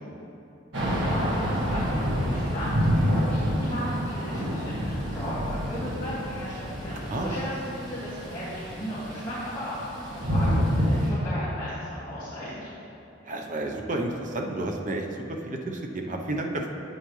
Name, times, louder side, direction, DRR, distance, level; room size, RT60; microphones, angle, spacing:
Thunder / Rain, 0.7-11.1, equal, 85° right, 1.6 m, -28 dB
voice 1, 1.0-12.7, equal, 25° left, -13 dB, 2.0 m, -36 dB
voice 2, 13.2-15.1 15.5-16.7, right 2 dB, 45° right, 2 dB, 0.8 m, -31 dB
9.0 x 8.1 x 3.2 m, 2.8 s
head